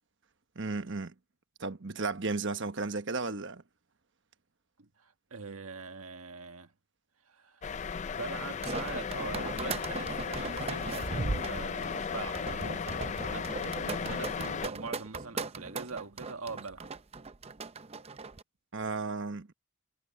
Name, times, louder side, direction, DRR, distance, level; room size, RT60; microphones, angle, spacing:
voice 1, 0.5-1.1 1.6-3.6 18.7-19.5, right 3 dB, 60° right, 1.2 m, -34 dB
voice 2, 4.8-6.7 7.3-16.9, right 4 dB, 85° right, 1.6 m, -43 dB
sound 1, 7.6-14.7, left 6 dB, 35° left, 0.4 m, -36 dB
sound 2, 8.4-18.4, right 3 dB, 30° right, 0.6 m, -38 dB
head